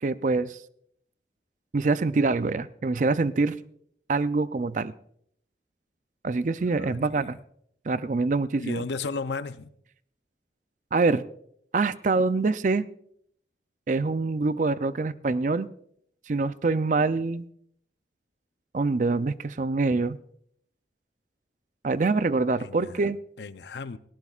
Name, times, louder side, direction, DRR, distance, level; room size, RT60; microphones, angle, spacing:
voice 1, 0.0-0.6 1.7-3.6 4.1-4.9 6.2-7.4 7.9-8.8 10.9-11.2 11.7-12.9 13.9-15.7 16.3-17.5 18.7-20.2 21.8-23.2, right 3 dB, 45° right, 14 dB, 0.4 m, -25 dB
voice 2, 6.6-7.3 8.6-9.7 22.6-24.0, left 4 dB, 80° left, 12 dB, 0.6 m, -35 dB
18.5 x 17.5 x 2.4 m, 0.68 s
head